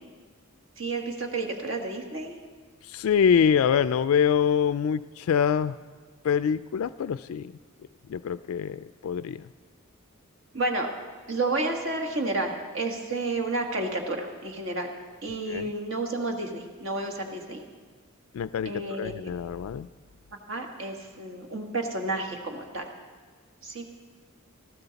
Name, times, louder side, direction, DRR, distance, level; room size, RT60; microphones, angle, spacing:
voice 1, 0.8-2.4 10.5-10.9 11.3-14.9 15.2-17.6 18.6-19.2 20.5-22.9 23.6-23.8, right 2 dB, 65° right, 3 dB, 1.7 m, -31 dB
voice 2, 2.9-5.8 6.2-7.5 8.1-9.4 15.5-15.7 18.3-18.7 19.0-19.9, left 7 dB, 80° left, 14 dB, 0.3 m, -25 dB
18.5 x 14.5 x 4.1 m, 1.5 s
head